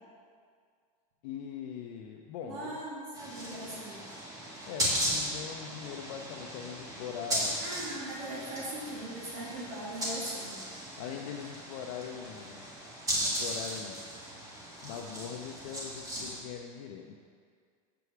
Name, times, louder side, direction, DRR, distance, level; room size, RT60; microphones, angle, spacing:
voice 1, 1.2-2.8 4.7-7.6 11.0-12.7 13.2-14.0 14.8-17.1, left 8 dB, 60° left, 1 dB, 0.6 m, -41 dB
voice 2, 2.4-4.1 7.4-10.5, right 1 dB, 70° right, -5 dB, 2.2 m, -40 dB
sound 1, 3.1-16.4, equal, 20° right, 1.7 m, -37 dB
6.9 x 4.7 x 6.9 m, 2.1 s
supercardioid pair, 155°, 19 cm